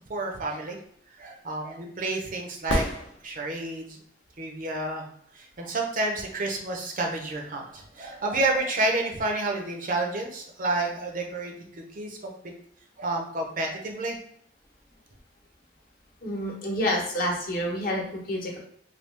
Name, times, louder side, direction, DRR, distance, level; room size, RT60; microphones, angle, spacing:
voice 1, 0.1-0.8 1.1-4.0 4.4-5.1 5.3-12.5 13.0-14.2, right 2 dB, 45° right, 2 dB, 0.6 m, -30 dB
sound 1, 2.7-3.8 7.7-7.8, left 1 dB, 85° left, 0.7 m, -30 dB
voice 2, 16.2-18.6, equal, 50° left, -1 dB, 0.9 m, -28 dB
3.3 x 2.3 x 3.2 m, 0.67 s
head